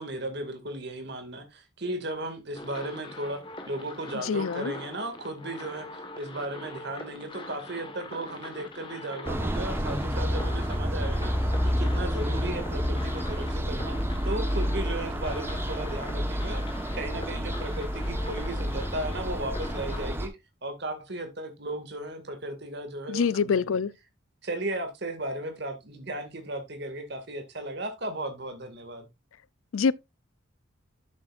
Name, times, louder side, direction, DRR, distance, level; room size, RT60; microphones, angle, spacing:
voice 1, 0.0-14.0 14.2-16.6 16.9-20.3 20.6-23.8 24.4-29.1, right 1 dB, 55° right, 2.2 m, -36 dB
sound 1, 2.5-20.2, left 2 dB, 25° left, 1.4 m, -43 dB
voice 2, 4.2-4.7 23.1-23.9 29.7-29.9, left 6 dB, 80° left, 0.4 m, -25 dB
sound 2, 9.3-20.3, equal, 10° right, 1.2 m, -29 dB
11.0 x 7.9 x 2.5 m
head